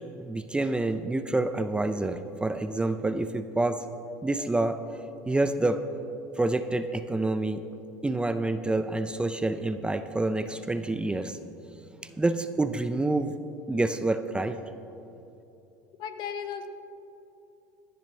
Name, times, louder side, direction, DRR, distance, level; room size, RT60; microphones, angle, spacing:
voice 1, 0.2-3.8 4.2-4.8 5.3-5.8 6.4-7.6 8.0-11.4 12.0-13.3 13.7-14.6, right 2 dB, 10° right, 10 dB, 0.5 m, -27 dB
voice 2, 16.0-16.7, left 8 dB, 55° left, 8 dB, 1.0 m, -35 dB
16.5 x 10.5 x 3.2 m, 2.9 s
hypercardioid pair, 85°, 9 cm